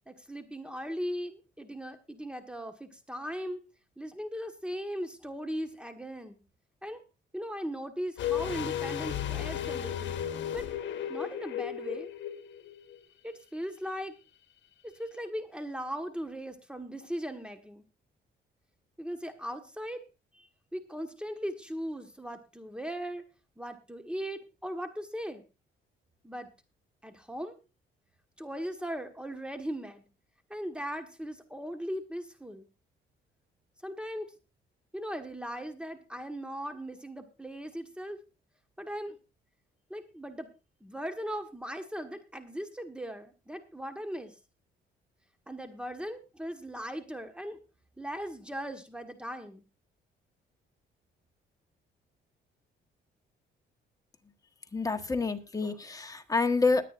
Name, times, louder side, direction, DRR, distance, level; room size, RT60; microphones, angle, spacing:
voice 1, 0.1-3.6 4.0-6.4 6.8-7.0 7.3-10.2 10.5-10.7 11.1-12.1 13.2-14.2 14.8-17.8 19.0-20.0 20.3-23.2 23.6-25.4 26.2-26.5 27.0-27.5 28.4-30.1 30.5-32.7 33.8-34.3 34.9-38.2 38.8-39.2 39.9-40.5 40.8-44.4 45.5-47.6 48.0-49.6, equal, 5° right, 7 dB, 1.6 m, -38 dB
sound 1, 8.2-13.0 13.3-13.4, left 10 dB, 70° left, 1.3 m, -34 dB
voice 2, 54.7-56.8, left 4 dB, 15° left, 6 dB, 1.5 m, -28 dB
20.5 x 9.1 x 2.6 m, 0.29 s
cardioid pair, 90°, 20 cm